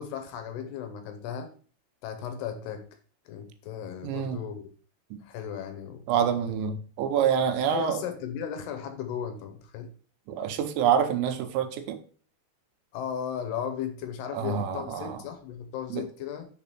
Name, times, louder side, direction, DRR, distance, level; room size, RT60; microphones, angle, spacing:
voice 1, 0.0-1.5 2.0-2.9 3.3-4.7 5.2-6.0 7.7-9.9 12.9-16.5, left 8 dB, 75° left, 2.7 m, -36 dB
voice 2, 4.0-4.4 5.1-5.2 6.1-8.0 10.3-12.0 14.3-15.2 15.9-16.0, right 8 dB, 85° right, 3.2 m, -27 dB
6.7 x 3.9 x 5.9 m
omnidirectional pair, 5.0 m